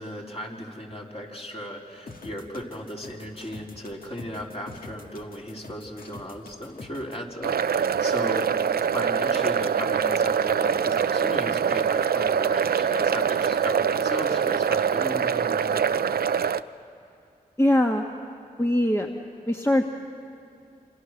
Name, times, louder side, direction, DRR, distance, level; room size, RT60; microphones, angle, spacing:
voice 1, 0.0-8.5 8.9-16.0, equal, 40° left, -2 dB, 4.0 m, -36 dB
sound 1, 2.1-7.2, left 3 dB, 65° left, 1.9 m, -45 dB
sound 2, 7.4-16.6, right 7 dB, 80° right, 0.5 m, -24 dB
voice 2, 17.6-18.0 18.6-19.1 19.5-19.8, left 1 dB, 15° left, 1 dB, 1.4 m, -21 dB
27.5 x 26.5 x 6.6 m, 2.5 s
cardioid pair, 60°, 16 cm